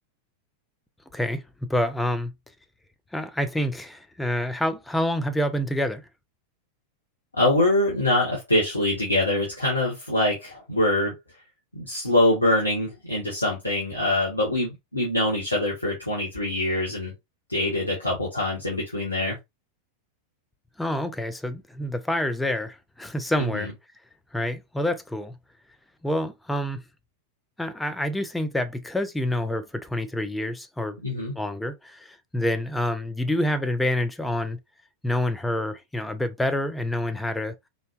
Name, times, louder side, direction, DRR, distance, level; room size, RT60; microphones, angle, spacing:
voice 1, 1.1-2.3 3.1-6.0 20.8-23.7 24.3-25.3 26.0-26.8 27.6-31.0 31.4-34.6 35.0-37.6, left 1 dB, 5° left, 0.6 m, -27 dB
voice 2, 7.4-11.1 11.7-17.1 17.5-19.4 23.4-23.7 31.0-31.3, left 1 dB, 80° left, 1.3 m, -24 dB
4.0 x 3.3 x 2.4 m
figure-of-eight pair, 90°, 0 cm